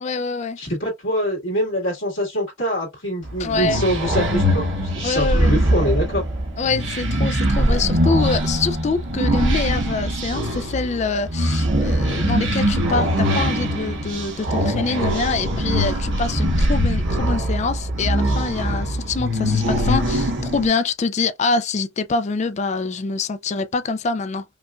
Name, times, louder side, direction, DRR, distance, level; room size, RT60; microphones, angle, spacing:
voice 1, 0.0-0.6 3.4-3.8 5.0-5.6 6.6-24.4, left 4 dB, 35° left, 0.3 m, -25 dB
voice 2, 0.6-6.2, equal, 70° left, 2.0 m, -24 dB
sound 1, 3.2-20.7, equal, 60° right, 1.0 m, -22 dB
5.1 x 2.4 x 2.2 m
head